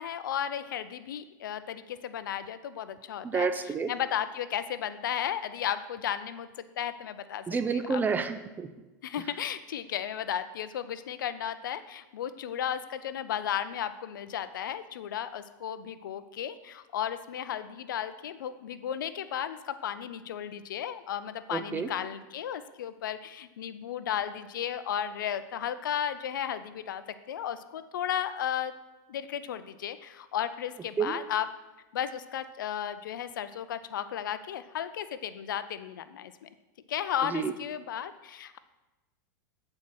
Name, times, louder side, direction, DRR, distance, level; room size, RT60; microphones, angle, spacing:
voice 1, 0.0-3.5 3.9-7.4 7.7-8.0 9.0-28.7 29.1-31.5 31.9-36.5 36.9-38.6, left 9 dB, 85° left, 13 dB, 0.5 m, -34 dB
voice 2, 3.2-3.9 7.5-8.7 21.5-21.9 31.0-31.2 37.3-37.5, right 5 dB, 15° right, 9 dB, 0.6 m, -29 dB
7.4 x 4.3 x 6.2 m, 1.1 s
hypercardioid pair, 110°, 10 cm